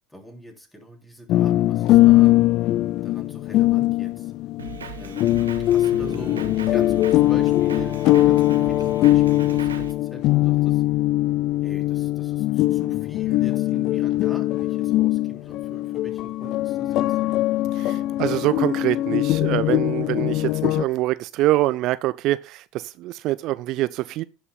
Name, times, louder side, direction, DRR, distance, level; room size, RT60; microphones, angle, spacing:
voice 1, 0.1-2.3 3.0-4.3 5.0-10.8 11.6-17.2, right 1 dB, 10° left, 3.1 m, -42 dB
sound 1, 1.3-20.8, left 16 dB, 50° left, 0.3 m, -21 dB
Drum kit, 4.6-9.9, right 8 dB, 85° right, 1.0 m, -38 dB
voice 2, 17.7-24.2, right 16 dB, 55° right, 0.3 m, -25 dB
16.5 x 5.6 x 2.3 m
figure-of-eight pair, 70°, 0 cm